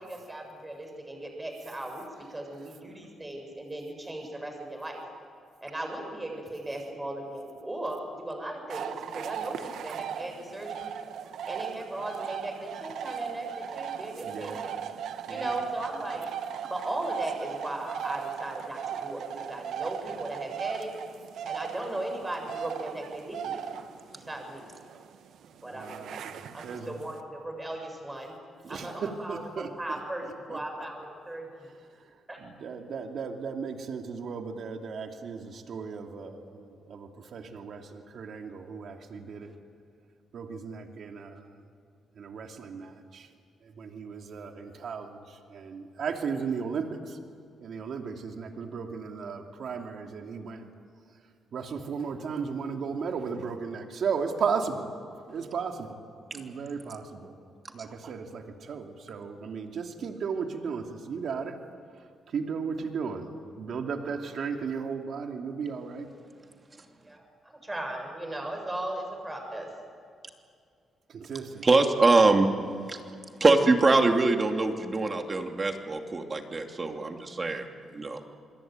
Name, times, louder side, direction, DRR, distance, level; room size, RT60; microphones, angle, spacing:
voice 1, 0.0-5.0 5.6-10.9 11.5-14.8 15.3-16.2 16.7-20.9 21.5-23.6 24.1-24.7 25.6-26.2 26.5-28.3 28.7-30.2 30.5-31.5 32.3-32.4 67.0-69.7, right 1 dB, 15° right, 3 dB, 7.4 m, -37 dB
sound 1, 8.7-27.2, right 8 dB, 75° right, 1.3 m, -38 dB
voice 2, 14.2-14.6 15.3-15.6 25.7-27.1 28.6-30.9 31.8-39.5 40.3-41.6 42.1-43.3 43.6-47.2 47.6-50.7 51.5-54.9 55.3-56.0 56.3-57.4 57.7-61.6 62.3-63.3 63.6-66.1 71.1-71.6, right 5 dB, 60° right, 3 dB, 2.8 m, -35 dB
voice 3, 71.6-72.5 72.9-73.0 73.4-77.6 77.9-78.2, right 3 dB, 30° right, 4 dB, 2.9 m, -23 dB
27.5 x 22.0 x 9.3 m, 2.3 s
cardioid pair, 90°, 0 cm